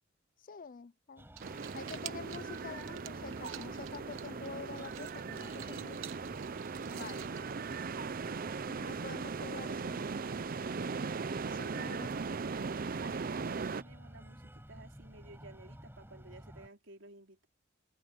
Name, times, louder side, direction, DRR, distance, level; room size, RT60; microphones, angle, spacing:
voice 1, 0.4-1.3 1.7-6.0 6.9-7.3 8.7-10.1 11.5-12.1, left 5 dB, 45° left, 0.5 m, -47 dB
Breathing, 1.2-16.7, equal, 10° right, 6.0 m, -53 dB
sound 1, 1.2-8.2, right 12 dB, 90° right, 1.1 m, -51 dB
sound 2, 1.4-13.8, right 4 dB, 45° right, 0.5 m, -39 dB
voice 2, 13.0-17.5, right 2 dB, 65° right, 4.7 m, -55 dB
head